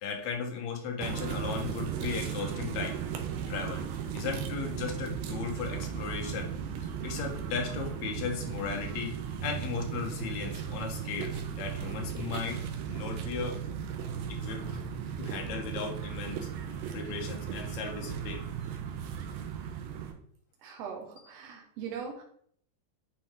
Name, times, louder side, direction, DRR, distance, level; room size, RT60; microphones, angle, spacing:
voice 1, 0.0-3.0 3.5-3.8 4.1-6.5 7.0-9.2 9.4-12.6 12.9-13.6 14.3-14.8 15.2-16.5 16.9-18.4, left 6 dB, 60° left, 2 dB, 2.2 m, -36 dB
sound 1, 1.0-20.1, right 8 dB, 90° right, 2.6 m, -36 dB
voice 2, 20.6-22.2, right 6 dB, 55° right, 1 dB, 2.0 m, -40 dB
8.9 x 4.2 x 3.7 m, 0.62 s
omnidirectional pair, 4.0 m